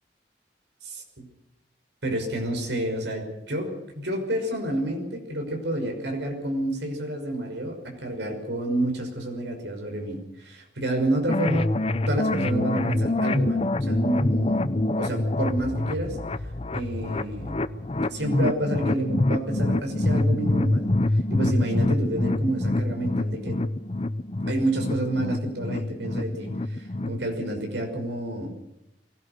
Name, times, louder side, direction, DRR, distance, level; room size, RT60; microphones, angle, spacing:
voice 1, 2.0-16.2 16.7-17.6 18.1-20.9 21.3-23.6 24.5-28.5, right 1 dB, 90° right, 3 dB, 6.0 m, -29 dB
sound 1, 11.3-27.2, left 2 dB, 35° left, 0.7 m, -26 dB
23.0 x 17.5 x 6.7 m, 0.91 s
head